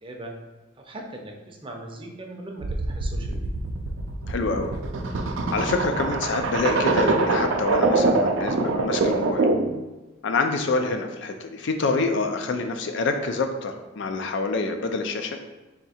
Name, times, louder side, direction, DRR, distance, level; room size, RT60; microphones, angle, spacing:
voice 1, 0.0-0.3 0.8-3.5, right 2 dB, 25° right, 1 dB, 0.6 m, -39 dB
sound 1, 2.6-9.8, right 3 dB, 75° right, 0.4 m, -24 dB
voice 2, 4.3-4.7 5.1-9.5 10.2-15.4, left 3 dB, 65° left, 6 dB, 0.5 m, -27 dB
3.5 x 2.7 x 4.2 m, 1.1 s
head